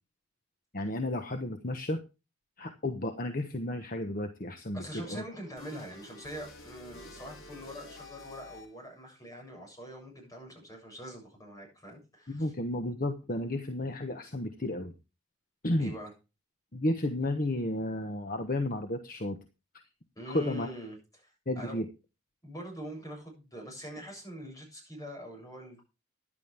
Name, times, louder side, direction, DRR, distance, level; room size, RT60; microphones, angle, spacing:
voice 1, 0.7-2.0 2.6-5.2 12.3-14.9 15.6-15.9 16.7-19.4 20.3-20.7 21.5-21.9, left 1 dB, 40° left, 7 dB, 1.2 m, -32 dB
voice 2, 4.7-12.5 15.8-16.1 20.2-21.0 21.2-21.8 22.4-25.8, equal, 15° left, 1 dB, 7.5 m, -44 dB
sound 1, 5.6-9.0, left 3 dB, 80° left, 3.4 m, -49 dB
15.0 x 10.5 x 3.5 m, 0.29 s
head